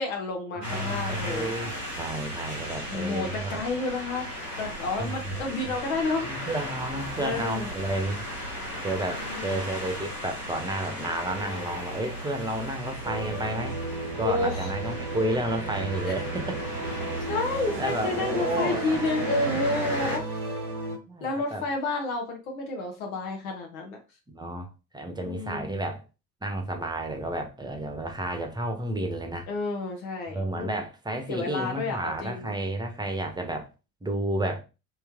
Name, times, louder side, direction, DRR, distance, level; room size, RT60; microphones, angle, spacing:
voice 1, 0.0-1.5 2.9-4.3 4.6-6.5 7.2-7.7 9.0-9.6 14.2-14.7 16.1-16.2 17.3-20.2 21.2-24.0 25.2-25.8 29.5-30.7 31.3-32.5, left 3 dB, 70° left, 1.1 m, -30 dB
voice 2, 0.5-3.6 5.0-5.2 5.7-5.8 6.2-8.3 8.8-13.8 14.2-16.7 17.0-17.1 17.8-19.0 20.0-20.2 21.1-21.6 24.3-24.7 24.9-26.0 26.4-29.5 30.3-33.7 34.0-34.6, right 1 dB, 10° right, 1.0 m, -31 dB
sound 1, 0.6-20.2, equal, 90° left, 1.3 m, -36 dB
sound 2, 13.0-21.0, right 3 dB, 80° right, 1.1 m, -34 dB
3.2 x 3.1 x 3.6 m
figure-of-eight pair, 55°, 44 cm